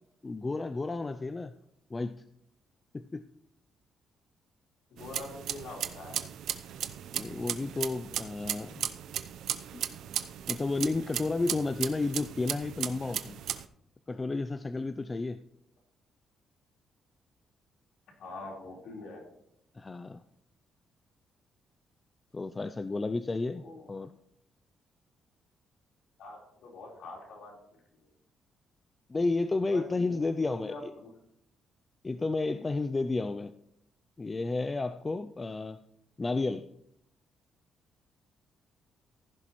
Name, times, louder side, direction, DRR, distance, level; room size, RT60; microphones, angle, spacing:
voice 1, 0.2-1.5 1.9-2.1 2.9-3.3 7.1-8.9 9.7-9.8 10.5-13.4 14.1-15.4 19.8-20.2 22.3-23.6 23.9-24.1 29.1-30.9 32.0-33.5 34.2-35.8 36.2-36.7, left 3 dB, 15° left, 11 dB, 0.3 m, -32 dB
voice 2, 4.9-6.3 18.2-19.2 23.5-24.1 26.2-27.6 27.9-28.1 29.7-31.1, left 2 dB, 70° left, -1 dB, 4.0 m, -45 dB
sound 1, 5.0-13.6, right 10 dB, 75° right, 0.6 m, -36 dB
15.0 x 11.0 x 3.1 m, 0.73 s
cardioid pair, 170°, 0 cm